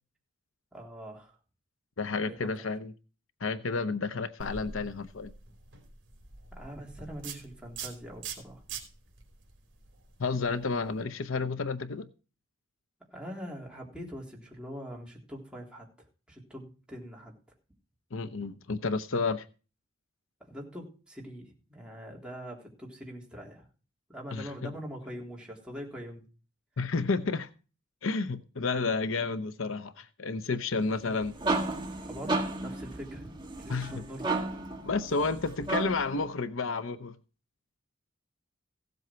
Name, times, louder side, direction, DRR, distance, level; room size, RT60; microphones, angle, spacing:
voice 1, 0.7-1.4 2.2-2.7 6.5-8.6 13.1-17.3 20.4-23.6 24.1-26.2 32.0-33.3 33.6-34.3, equal, 5° right, 3.5 m, -43 dB
voice 2, 2.0-2.9 3.4-5.3 10.2-12.1 18.1-19.5 24.3-24.7 26.8-27.5 28.0-31.4 33.7-34.0 34.8-37.2, left 4 dB, 75° left, 0.8 m, -31 dB
sound 1, 4.4-11.0, right 6 dB, 60° right, 3.2 m, -45 dB
sound 2, 31.0-36.2, right 2 dB, 25° right, 1.8 m, -33 dB
16.0 x 7.9 x 4.5 m
head